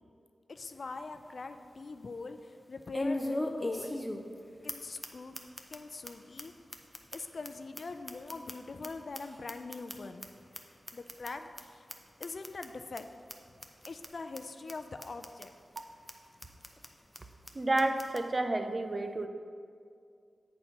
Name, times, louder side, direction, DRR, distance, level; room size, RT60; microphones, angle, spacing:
voice 1, 0.5-2.4 2.7-4.0 4.6-5.4 5.7-6.5 7.1-10.3 10.9-11.8 12.2-13.1 13.9-15.5, left 3 dB, 60° left, 8 dB, 0.4 m, -42 dB
sound 1, 0.6-0.7 1.1-1.2 2.9-4.4 4.7-4.8 5.0-5.1 5.3-5.8 6.0-6.1 6.4-6.5 6.7-8.9 9.1-10.3 10.5-10.6 10.9-11.3 11.6-11.7 11.9-12.0 12.2-12.7 13.0-13.1 13.3-13.4 13.6-14.1 14.3-14.4 14.7-14.8 15.0-15.5 15.8-15.9 16.1-16.2 16.4-16.9 17.1-17.2 17.5-17.6 17.8-18.2, left 1 dB, 10° left, 0.7 m, -38 dB
voice 2, 17.5-19.3, right 2 dB, 40° right, 6 dB, 0.6 m, -30 dB
7.8 x 4.2 x 5.7 m, 2.3 s
cardioid pair, 55°, 0 cm